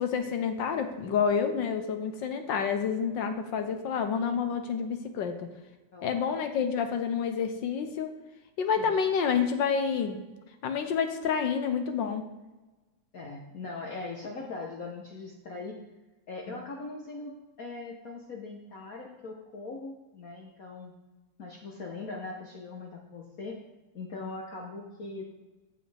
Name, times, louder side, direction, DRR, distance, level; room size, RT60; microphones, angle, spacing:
voice 1, 0.0-5.5 6.0-8.1 8.6-10.2 10.6-12.3, left 6 dB, 70° left, 7 dB, 1.4 m, -28 dB
voice 2, 5.9-6.3 8.8-8.9 13.1-15.8 16.3-20.9 21.4-23.6 23.9-25.3, left 3 dB, 50° left, -1 dB, 1.3 m, -40 dB
14.5 x 7.5 x 3.4 m, 1.1 s
omnidirectional pair, 2.2 m